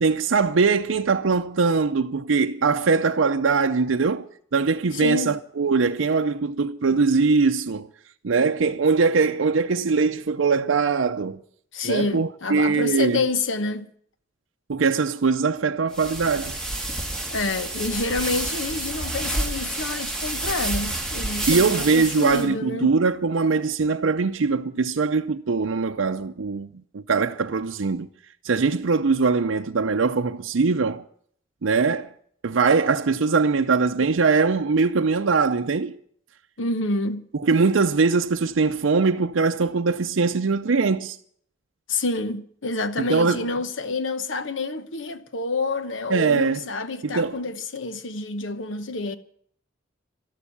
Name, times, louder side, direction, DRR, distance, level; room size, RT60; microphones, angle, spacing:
voice 1, 0.0-4.3 4.5-7.9 8.2-11.4 11.8-13.2 14.7-16.6 21.5-26.7 26.9-28.1 28.4-31.0 31.6-32.1 32.4-36.0 37.4-41.2 43.1-43.5 46.1-46.6 47.0-47.4, right 4 dB, 80° right, 0.6 m, -21 dB
voice 2, 4.9-5.4 11.7-13.9 17.3-22.9 36.6-37.3 41.9-49.2, left 3 dB, 75° left, 1.0 m, -28 dB
sound 1, 15.9-22.5, right 2 dB, 5° left, 2.1 m, -29 dB
13.0 x 11.5 x 8.5 m
head